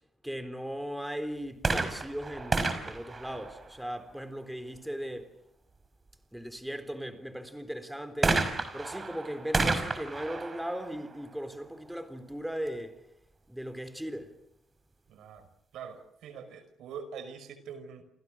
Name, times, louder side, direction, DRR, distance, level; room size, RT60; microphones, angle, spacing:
voice 1, 0.2-5.3 6.3-8.5 8.7-13.0 13.5-14.3, equal, 5° right, 3.9 m, -38 dB
sound 1, 1.6-4.2 8.2-11.9 12.7-12.8, right 3 dB, 30° right, 5.7 m, -31 dB
voice 2, 15.1-15.5 15.7-18.0, right 6 dB, 80° right, 5.4 m, -44 dB
29.5 x 29.0 x 6.4 m
cardioid pair, 90°, 0 cm